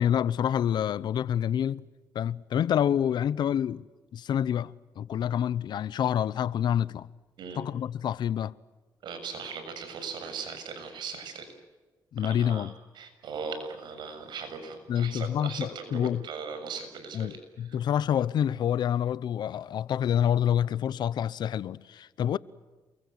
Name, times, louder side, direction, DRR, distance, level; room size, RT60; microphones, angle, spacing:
voice 1, 0.0-1.9 2.1-3.8 4.1-7.1 7.6-8.5 12.1-12.7 14.9-16.2 17.1-22.4, left 9 dB, 75° left, 0.9 m, -27 dB
voice 2, 9.0-11.5 12.2-17.4 17.7-17.8, right 5 dB, 80° right, 6.8 m, -39 dB
29.0 x 23.0 x 8.0 m
cardioid pair, 85°, 8 cm